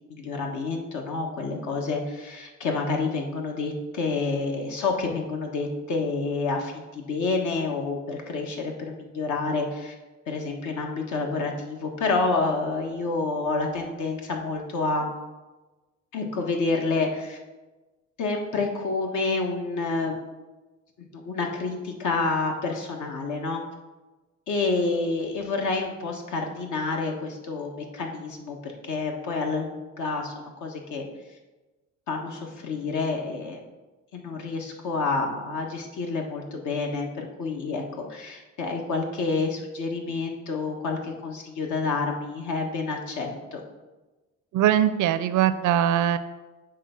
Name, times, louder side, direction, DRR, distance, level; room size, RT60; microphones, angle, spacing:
voice 1, 0.1-9.9 10.3-15.1 16.1-17.4 18.2-20.2 21.0-23.6 24.5-30.3 30.6-31.1 32.1-33.6 34.1-43.6, left 3 dB, 75° left, 1 dB, 1.4 m, -28 dB
voice 2, 44.5-46.2, right 11 dB, 75° right, 13 dB, 0.5 m, -21 dB
7.6 x 3.4 x 5.8 m, 1.2 s
cardioid pair, 90°, 30 cm